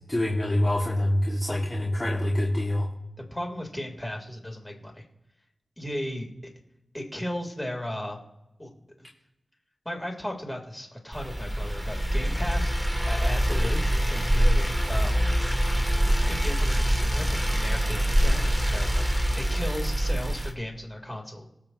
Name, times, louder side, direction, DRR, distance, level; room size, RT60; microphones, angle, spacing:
voice 1, 0.1-2.9, left 1 dB, 30° left, -4 dB, 2.4 m, -25 dB
voice 2, 3.2-5.0 5.8-6.3 6.9-8.2 8.6-9.1 9.9-12.7 13.0-15.3 16.3-21.5, left 1 dB, 15° left, 1 dB, 3.8 m, -36 dB
sound 1, 11.1-20.5, equal, 5° right, 1.9 m, -24 dB
18.5 x 8.1 x 3.1 m, 0.92 s
cardioid pair, 40°, 0 cm